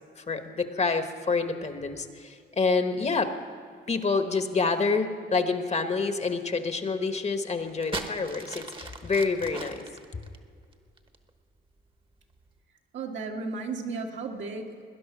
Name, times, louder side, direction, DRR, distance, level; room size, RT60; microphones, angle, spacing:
voice 1, 0.2-3.3 3.9-9.8, left 4 dB, 35° left, 8 dB, 1.2 m, -27 dB
sound 1, 7.6-11.3 12.1-12.5, right 3 dB, 25° right, 1.2 m, -38 dB
voice 2, 12.9-14.9, right 4 dB, 70° right, 1 dB, 1.9 m, -34 dB
18.5 x 10.5 x 6.0 m, 2.2 s
cardioid pair, 90°, 20 cm